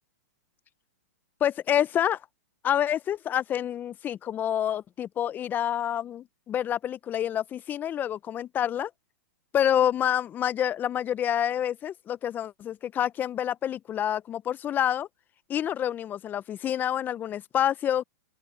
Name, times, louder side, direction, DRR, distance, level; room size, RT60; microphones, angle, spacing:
voice 1, 1.4-2.2 2.6-8.9 9.5-15.1 15.5-18.0, left 10 dB, 20° left, 0.5 m, -27 dB
open air
hypercardioid pair, 130°, 9 cm